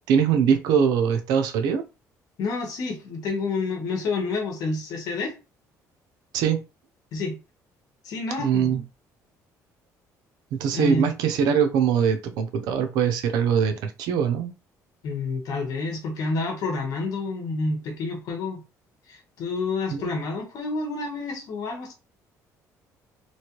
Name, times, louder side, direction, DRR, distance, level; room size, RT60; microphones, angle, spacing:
voice 1, 0.1-1.8 6.3-6.6 8.4-8.8 10.5-14.5 19.9-20.1, right 7 dB, 85° right, 0.6 m, -22 dB
voice 2, 2.4-5.3 7.1-7.4 8.0-8.7 10.7-11.1 15.0-18.6 19.1-21.9, left 3 dB, 65° left, 1.1 m, -29 dB
3.1 x 2.5 x 2.9 m
cardioid pair, 130°, 7 cm